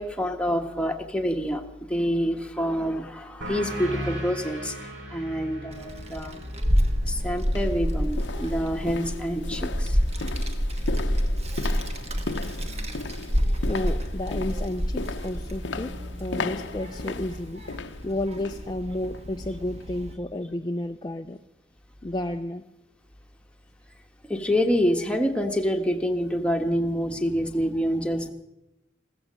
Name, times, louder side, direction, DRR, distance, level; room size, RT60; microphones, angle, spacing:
voice 1, 0.0-1.6 1.9-6.4 7.0-10.0 24.3-28.3, equal, 5° left, 4 dB, 1.2 m, -27 dB
sound 1, 3.4-8.6, right 1 dB, 75° right, 2.5 m, -38 dB
Child speech kid speaking, 5.7-20.1, equal, 35° right, 1.3 m, -29 dB
sound 2, 6.7-6.8 7.4-18.7 19.0-19.3 19.7-19.8, left 3 dB, 85° left, 0.8 m, -37 dB
voice 2, 13.7-17.6 18.0-21.4 22.0-22.6, left 1 dB, 25° left, 6 dB, 0.4 m, -31 dB
15.5 x 14.5 x 6.3 m, 0.92 s
head